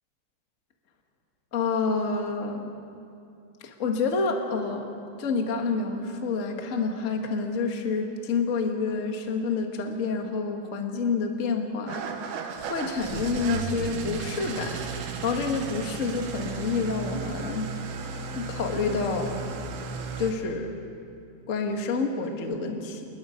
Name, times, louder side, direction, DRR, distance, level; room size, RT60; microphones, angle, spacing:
voice 1, 1.5-2.6 3.6-4.8 5.2-12.3 12.7-17.7 18.3-19.3 20.2-20.7 21.5-23.1, left 4 dB, 60° left, 3 dB, 0.8 m, -28 dB
Engine starting / Idling, 11.9-20.3, right 5 dB, 80° right, 3.2 m, -34 dB
27.5 x 21.0 x 5.2 m, 2.5 s
omnidirectional pair, 4.4 m